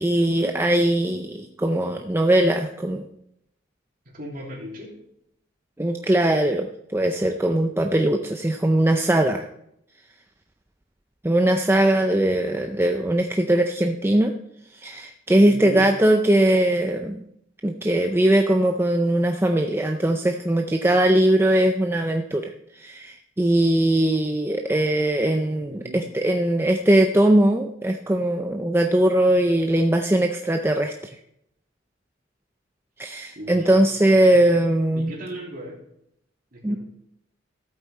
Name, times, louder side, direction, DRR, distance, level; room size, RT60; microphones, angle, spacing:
voice 1, 0.0-3.1 5.8-9.4 11.2-14.3 14.7-17.2 17.6-31.2 33.0-35.1 36.6-36.8, right 1 dB, 10° right, 4 dB, 0.5 m, -20 dB
voice 2, 4.1-4.9 15.5-15.9 25.7-26.0 33.0-33.9 34.3-34.4 34.7-35.8 36.5-36.8, equal, 45° right, -2 dB, 3.1 m, -37 dB
14.0 x 8.2 x 4.3 m, 0.75 s
head